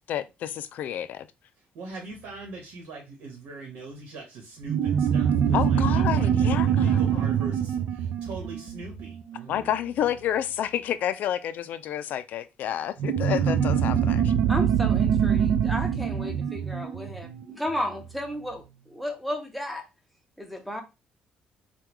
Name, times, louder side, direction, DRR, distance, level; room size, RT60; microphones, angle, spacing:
voice 1, 0.1-1.3 5.5-7.3 9.5-14.3, left 10 dB, 60° left, 0.3 m, -30 dB
voice 2, 1.7-9.7, right 3 dB, 90° right, 1.1 m, -42 dB
sound 1, 4.7-9.6 13.0-17.9, right 8 dB, 65° right, 0.4 m, -24 dB
voice 3, 14.5-19.8 20.4-20.8, left 1 dB, ahead, 0.7 m, -33 dB
3.6 x 2.3 x 3.0 m
cardioid pair, 140°, 3 cm